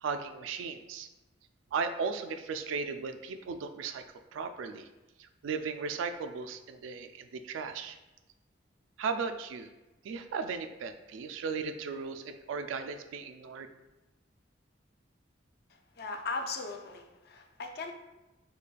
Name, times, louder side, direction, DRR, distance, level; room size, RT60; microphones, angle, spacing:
voice 1, 0.0-1.1 1.7-4.0 4.3-4.9 5.2-8.0 9.0-9.7 10.0-13.7, right 5 dB, 80° right, 8 dB, 0.3 m, -36 dB
voice 2, 16.0-17.9, left 3 dB, 55° left, 4 dB, 0.4 m, -38 dB
3.9 x 3.2 x 2.2 m, 1.1 s
head